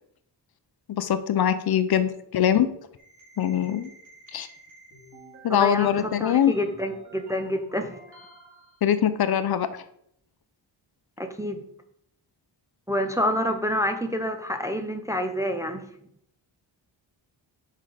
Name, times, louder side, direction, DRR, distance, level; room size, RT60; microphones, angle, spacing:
voice 1, 0.9-2.7 3.4-3.9 4.3-4.5 5.4-6.5 8.8-9.8, left 9 dB, 55° left, 11 dB, 0.5 m, -23 dB
sound 1, 3.0-8.8, right 1 dB, 40° right, 2.3 m, -50 dB
voice 2, 5.5-7.9 11.2-11.6 12.9-15.9, equal, 10° right, 5 dB, 0.4 m, -28 dB
5.9 x 5.5 x 4.8 m, 0.72 s
wide cardioid pair, 175°, 45 cm